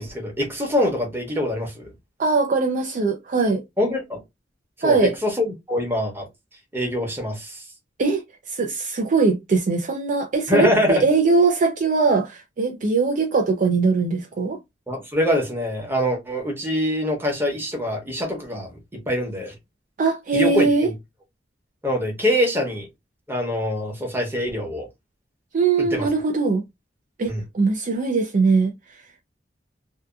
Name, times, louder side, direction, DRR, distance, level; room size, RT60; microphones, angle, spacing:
voice 1, 0.0-1.9 3.8-4.2 4.8-6.3 6.7-7.6 10.5-11.0 14.9-18.8 19.1-19.5 20.3-20.9 21.8-22.9 23.3-24.9 25.8-26.1 27.3-27.4, left 1 dB, 15° right, 0.9 m, -24 dB
voice 2, 2.2-3.6 4.8-5.2 8.0-8.2 8.5-14.6 20.0-20.9 25.5-26.6 27.2-28.7, right 4 dB, 45° right, 0.4 m, -21 dB
2.7 x 2.3 x 2.3 m
head